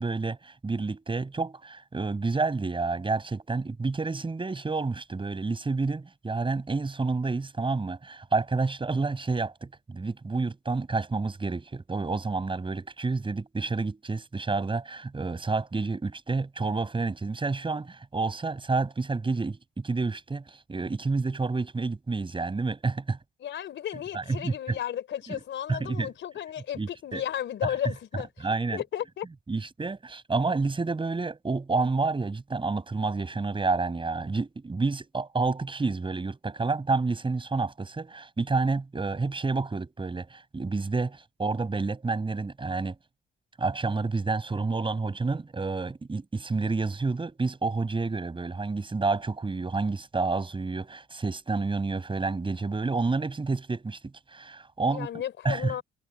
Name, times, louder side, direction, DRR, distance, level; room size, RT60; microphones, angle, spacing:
voice 1, 0.0-23.2 24.1-24.8 25.3-25.4 25.7-26.1 26.8-27.2 27.6-27.7 28.4-28.8 29.5-43.0 43.6-55.1 55.4-55.8, right 3 dB, 25° right, 6.0 m, -29 dB
voice 2, 23.4-29.3 54.9-55.8, left 10 dB, 70° left, 4.1 m, -34 dB
cardioid pair, 90°, 20 cm